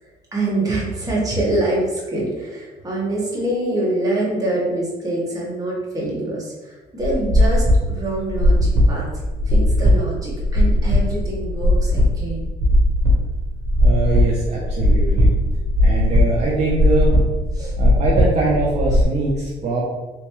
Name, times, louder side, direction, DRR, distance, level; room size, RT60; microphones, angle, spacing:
voice 1, 0.3-9.0 9.5-12.5 17.5-17.7, right 1 dB, 20° right, -5 dB, 1.3 m, -25 dB
sound 1, 7.0-19.1, left 1 dB, 60° right, 1.0 m, -18 dB
voice 2, 13.8-15.4 15.8-17.2 17.8-19.8, right 3 dB, 45° right, -4 dB, 0.7 m, -22 dB
3.4 x 2.9 x 3.1 m, 1.2 s
cardioid pair, 110°, 17 cm